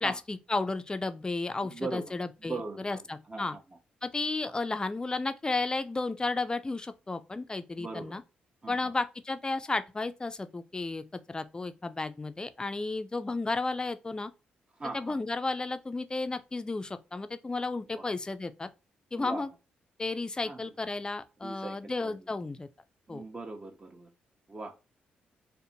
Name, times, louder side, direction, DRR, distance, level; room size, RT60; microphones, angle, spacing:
voice 1, 0.0-3.6 4.0-8.2 8.7-14.3 14.9-18.7 19.1-19.5 20.0-22.7 23.1-23.2, left 3 dB, 25° left, 0.4 m, -33 dB
voice 2, 1.7-2.0 2.4-3.0 3.3-3.5 7.8-8.2 8.6-8.9 14.8-15.2 17.9-18.1 19.2-19.4 20.4-20.7 21.4-22.2 23.1-24.1 24.5-24.7, right 3 dB, 30° right, 0.7 m, -39 dB
2.5 x 2.1 x 2.6 m
supercardioid pair, 55°, 4 cm